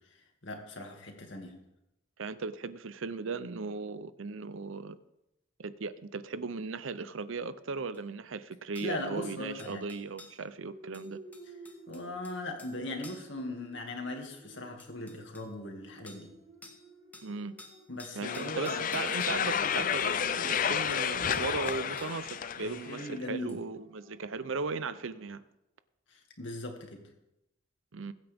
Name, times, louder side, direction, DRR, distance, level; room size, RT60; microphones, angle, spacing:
voice 1, 0.1-1.6 8.8-9.9 11.9-16.3 17.9-18.8 22.6-23.6 26.1-27.0, left 2 dB, 60° left, 2 dB, 2.3 m, -39 dB
voice 2, 2.2-5.0 5.6-11.2 17.2-17.6 18.1-25.4 27.9-28.1, right 4 dB, 75° right, 14 dB, 0.7 m, -37 dB
sound 1, 7.9-8.0 8.7-8.9 9.6-10.4 10.9-12.8 13.0-13.3 14.3-14.4 14.8-15.5 16.1-16.3 16.6-16.8 17.1-19.4 20.9-21.0 21.3-22.2 23.5-23.6, left 2 dB, 10° left, 1.3 m, -52 dB
sound 2, 10.7-24.9, right 2 dB, 25° right, 4.4 m, -55 dB
sound 3, 18.2-23.1, left 8 dB, 40° left, 0.5 m, -31 dB
21.5 x 8.9 x 3.6 m, 0.87 s
head